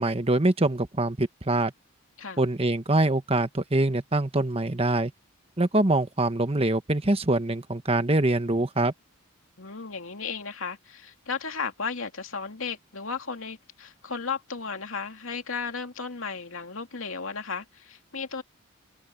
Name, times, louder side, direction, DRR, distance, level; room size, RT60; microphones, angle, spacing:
voice 1, 0.0-1.7 2.4-5.1 5.6-8.9, right 2 dB, 30° right, 1.2 m, -24 dB
voice 2, 9.6-18.4, left 5 dB, 70° left, 2.8 m, -34 dB
head